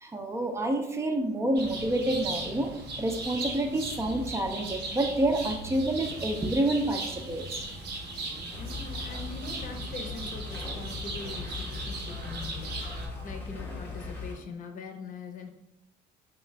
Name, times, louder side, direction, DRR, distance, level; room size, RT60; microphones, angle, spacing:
voice 1, 0.0-2.7 3.0-7.6, right 1 dB, 15° right, 3 dB, 0.5 m, -28 dB
sound 1, 1.6-13.1, right 2 dB, 70° right, 0.8 m, -38 dB
sound 2, 8.5-14.4, left 4 dB, 10° left, 0.8 m, -39 dB
voice 2, 8.6-15.5, left 3 dB, 50° left, 4 dB, 0.7 m, -42 dB
3.6 x 2.4 x 3.2 m, 0.82 s
cardioid pair, 110°, 17 cm